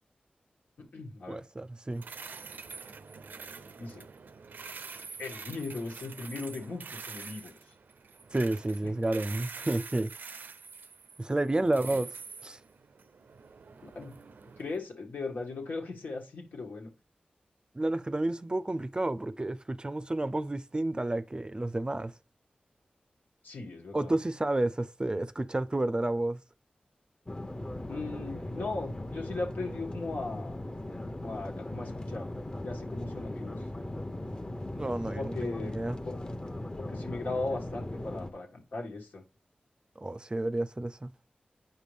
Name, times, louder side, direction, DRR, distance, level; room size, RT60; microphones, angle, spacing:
voice 1, 0.8-1.4 3.8-4.1 5.2-7.6 11.6-12.0 13.8-14.1 14.6-16.9 23.4-24.1 27.9-30.6 31.2-32.3 32.6-33.6 35.1-35.8 36.1-36.2 36.8-39.2, left 3 dB, 85° left, 1.9 m, -38 dB
voice 2, 1.3-2.0 8.3-10.1 11.2-12.1 12.4-12.6 17.7-22.1 23.9-26.4 34.8-36.0 40.0-41.1, right 2 dB, 30° right, 0.4 m, -31 dB
sound 1, 1.9-14.8, right 5 dB, 85° right, 0.5 m, -46 dB
sound 2, 27.3-38.3, left 1 dB, 25° left, 0.9 m, -38 dB
9.0 x 5.1 x 3.4 m
cardioid pair, 45°, 3 cm